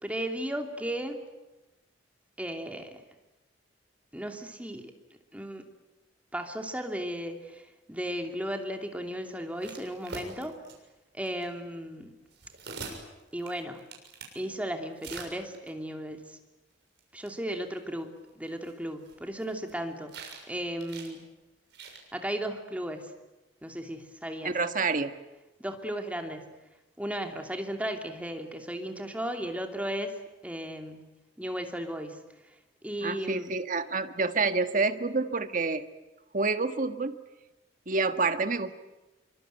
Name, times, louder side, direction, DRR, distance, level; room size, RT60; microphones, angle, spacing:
voice 1, 0.0-1.3 2.4-3.0 4.1-4.9 5.3-5.6 6.3-10.5 11.1-12.1 13.3-13.9 14.3-16.4 17.1-20.2 20.5-21.2 22.1-23.1 23.6-24.6 25.6-26.6 27.0-31.0 31.4-32.2 32.5-32.6 32.8-33.5, equal, 10° right, 4 dB, 2.7 m, -35 dB
sound 1, 9.6-10.7 11.3-11.4 12.3-14.4 15.0-15.7 17.0-17.1 17.3-17.4 17.5-17.6 18.5-19.7 20.1-20.5 20.8-21.1 21.7-22.0, right 4 dB, 65° right, 6.8 m, -43 dB
voice 2, 24.4-25.2 33.0-35.8 36.3-37.2 37.9-38.7, right 3 dB, 45° right, 9 dB, 1.5 m, -28 dB
26.0 x 24.5 x 9.2 m, 1.1 s
head